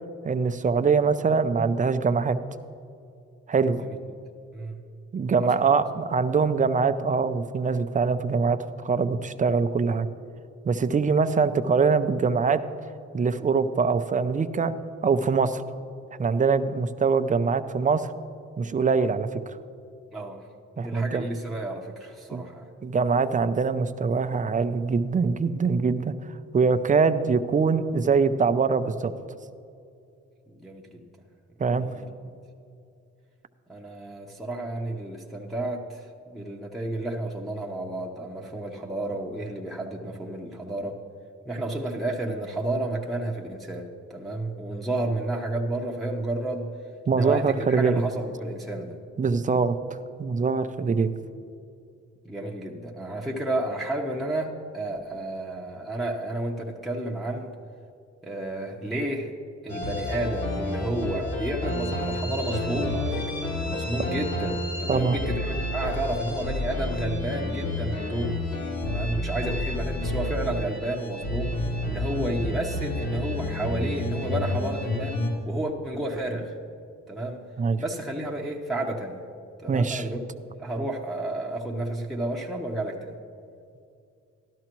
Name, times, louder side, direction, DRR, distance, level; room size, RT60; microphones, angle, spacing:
voice 1, 0.2-2.4 3.5-3.8 5.1-10.1 10.6-12.6 13.1-14.7 15.0-15.6 16.2-18.1 18.6-19.5 20.8-21.3 22.3-22.4 22.8-26.1 26.5-29.1 31.6-31.9 47.1-48.0 49.2-49.8 50.2-51.1 64.9-65.2 77.6-77.8 79.7-80.1, right 5 dB, 25° right, 11 dB, 0.5 m, -23 dB
voice 2, 3.6-4.0 4.5-4.8 5.4-5.6 20.1-20.4 20.8-22.7 30.5-31.0 31.6-32.1 33.7-41.0 41.4-46.7 47.1-49.0 50.8-51.0 52.2-57.5 58.2-59.3 59.6-63.4 63.7-68.4 68.8-75.2 75.5-76.5 77.1-77.4 77.8-79.2 79.6-80.2 80.6-83.1, right 1 dB, ahead, -3 dB, 0.9 m, -31 dB
sound 1, 59.7-75.3, left 1 dB, 55° left, 2.4 m, -30 dB
12.5 x 12.5 x 3.0 m, 2.5 s
cardioid pair, 90°, 30 cm